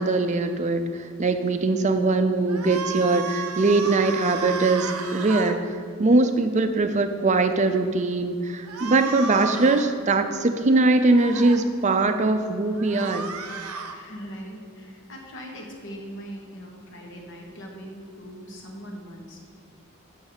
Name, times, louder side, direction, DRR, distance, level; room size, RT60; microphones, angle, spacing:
voice 1, 0.0-5.6 6.0-13.3, right 3 dB, 35° right, 8 dB, 0.5 m, -21 dB
sound 1, 2.5-5.5 8.7-9.9 11.0-11.6 12.7-14.0, right 5 dB, 85° right, 0.8 m, -33 dB
voice 2, 13.9-19.4, equal, 55° left, 1 dB, 1.3 m, -40 dB
8.8 x 6.2 x 3.9 m, 2.2 s
head